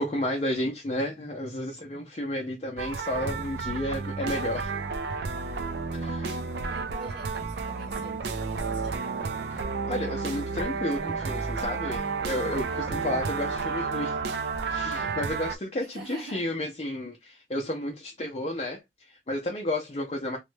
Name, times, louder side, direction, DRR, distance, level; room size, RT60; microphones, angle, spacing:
voice 1, 0.0-4.7 5.9-6.4 9.5-14.2 14.7-20.4, left 1 dB, 35° left, 0.5 m, -32 dB
sound 1, 2.8-15.6, right 4 dB, 65° right, 0.5 m, -31 dB
voice 2, 6.7-9.0 15.8-16.5, right 1 dB, 85° right, 1.2 m, -45 dB
3.1 x 2.2 x 3.1 m
head